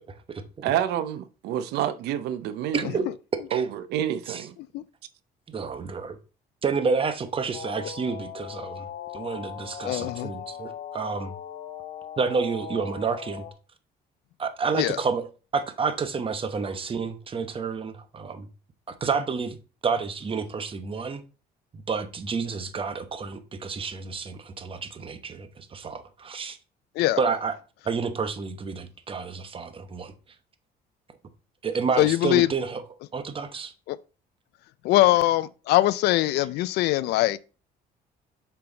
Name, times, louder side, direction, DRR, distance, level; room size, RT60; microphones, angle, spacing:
voice 1, 0.6-2.8 3.5-4.5, right 10 dB, 80° right, 0.6 m, -28 dB
voice 2, 5.5-6.2 6.6-8.9 9.1-11.3 12.2-13.4 14.4-15.3 15.5-18.5 18.9-19.6 19.8-21.2 21.7-26.6 27.2-27.6 27.8-30.1 31.6-32.8 33.1-33.7, right 5 dB, 30° right, 1.0 m, -29 dB
sound 1, 7.5-13.5, left 7 dB, 60° left, 1.1 m, -39 dB
voice 3, 9.8-10.3 14.7-15.0 27.0-27.2 32.0-32.5 33.9-34.0 34.8-37.4, left 16 dB, 75° left, 0.4 m, -22 dB
7.0 x 4.6 x 3.9 m
cardioid pair, 110°, 17 cm